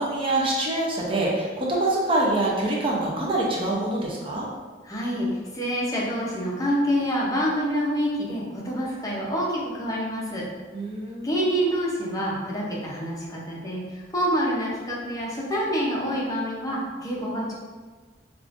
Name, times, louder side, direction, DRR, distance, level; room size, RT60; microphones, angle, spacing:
voice 1, 0.0-4.5 10.7-11.3, right 2 dB, 30° right, -3 dB, 0.5 m, -25 dB
voice 2, 4.8-5.3 5.5-10.4 11.2-17.5, equal, 20° left, -4 dB, 0.7 m, -27 dB
4.7 x 2.4 x 2.5 m, 1.4 s
head